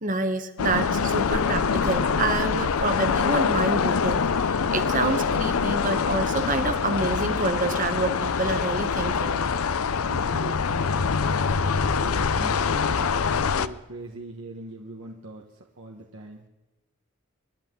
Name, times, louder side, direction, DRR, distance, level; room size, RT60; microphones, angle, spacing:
voice 1, 0.0-9.4, right 3 dB, 35° right, 9 dB, 1.2 m, -28 dB
sound 1, 0.6-13.7, left 5 dB, 80° left, 0.6 m, -24 dB
voice 2, 10.0-11.0 11.7-15.4 15.8-16.4, right 2 dB, 65° right, 0 dB, 1.3 m, -41 dB
26.0 x 11.5 x 3.8 m, 1.1 s
head